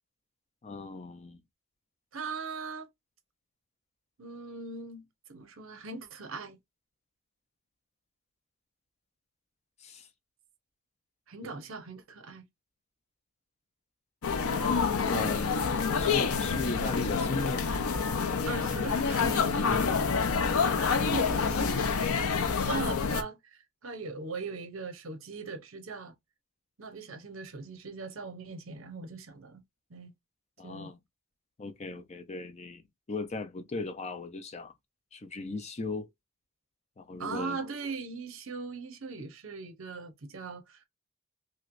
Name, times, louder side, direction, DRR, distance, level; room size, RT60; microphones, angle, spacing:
voice 1, 0.6-1.4 9.8-10.0 15.1-17.6 19.7-20.2 22.4-22.6 30.6-31.0 31.6-32.8 33.1-34.7 35.1-36.1 37.0-37.6, left 3 dB, 30° left, 0.4 m, -37 dB
voice 2, 2.1-2.9 4.2-6.6 11.3-12.5 18.5-19.8 20.8-26.1 26.8-29.6 29.9-30.1 30.6-30.9 37.2-40.9, right 4 dB, 70° right, 0.8 m, -40 dB
sound 1, 14.2-23.2, left 5 dB, 85° left, 0.6 m, -27 dB
3.1 x 2.8 x 2.5 m
head